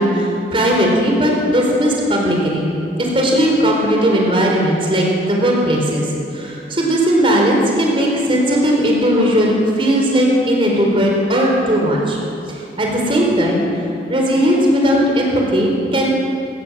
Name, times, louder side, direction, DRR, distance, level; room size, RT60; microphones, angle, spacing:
voice 1, 0.0-2.7 3.0-6.1 6.3-12.2 12.5-13.7 14.1-16.1, equal, 30° right, -1 dB, 4.3 m, -17 dB
26.0 x 19.5 x 7.6 m, 2.7 s
head